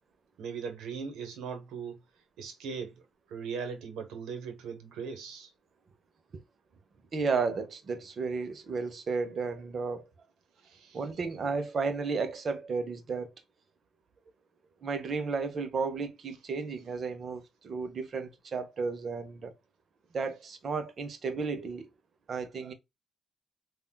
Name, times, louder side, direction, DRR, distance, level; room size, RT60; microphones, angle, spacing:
voice 1, 0.4-2.0 2.4-3.0 3.3-5.5 10.6-11.0, right 6 dB, 85° right, 0.9 m, -39 dB
voice 2, 7.1-10.0 10.9-13.3 14.8-19.6 20.1-21.9 22.3-22.7, right 4 dB, 50° right, 0.7 m, -33 dB
3.5 x 2.3 x 2.2 m
cardioid pair, 90°, 0 cm